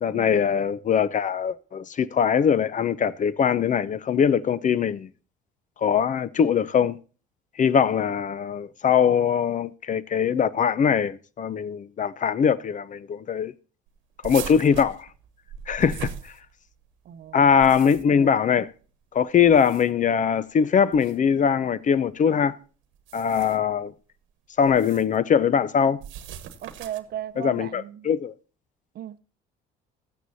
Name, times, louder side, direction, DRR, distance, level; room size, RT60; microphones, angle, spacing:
voice 1, 0.0-5.1 5.8-7.0 7.6-13.5 14.2-15.1 15.7-16.1 17.3-18.7 19.1-22.5 23.1-23.9 24.6-26.0 27.4-28.3, left 7 dB, 40° left, 0.6 m, -22 dB
sound 1, 14.2-16.9 17.4-18.3 19.4-20.1 20.9-21.2 22.9-23.7 24.7-25.2 26.0-27.2, right 9 dB, 75° right, 1.2 m, -39 dB
voice 2, 17.0-17.8 26.6-28.1 28.9-29.2, right 11 dB, 50° right, 0.7 m, -37 dB
13.5 x 9.3 x 2.7 m
hypercardioid pair, 65°, 20 cm